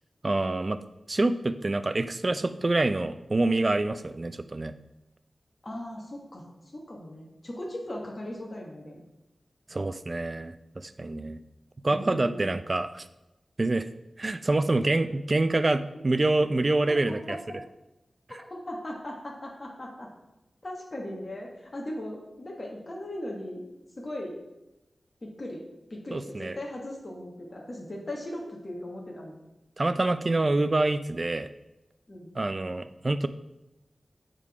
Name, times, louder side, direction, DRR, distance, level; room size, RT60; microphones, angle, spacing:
voice 1, 0.2-0.8 1.1-4.7 9.7-11.4 11.8-13.1 13.6-13.8 14.2-17.4 26.1-26.6 29.8-31.5 32.4-33.3, right 2 dB, 40° right, 11 dB, 0.4 m, -26 dB
voice 2, 5.6-6.5 6.7-9.0 11.9-12.5 14.8-14.9 16.9-17.4 18.5-20.1 20.6-23.7 24.0-24.4 25.2-25.6 25.9-29.4 32.1-32.3, left 1 dB, 40° left, -2 dB, 1.4 m, -38 dB
8.3 x 3.8 x 4.8 m, 0.96 s
wide cardioid pair, 90°, 0 cm